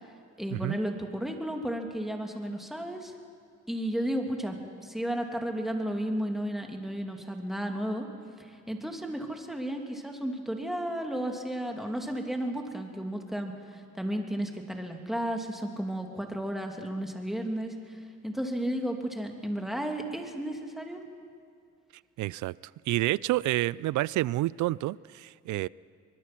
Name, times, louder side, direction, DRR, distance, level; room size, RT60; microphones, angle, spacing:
voice 1, 0.4-3.1 3.7-4.6 4.8-8.1 8.4-21.0, right 1 dB, ahead, 3 dB, 2.6 m, -33 dB
voice 2, 22.2-22.5 22.9-25.7, right 17 dB, 75° right, 22 dB, 0.5 m, -29 dB
24.0 x 21.5 x 6.1 m, 2.3 s
cardioid pair, 90°, 30 cm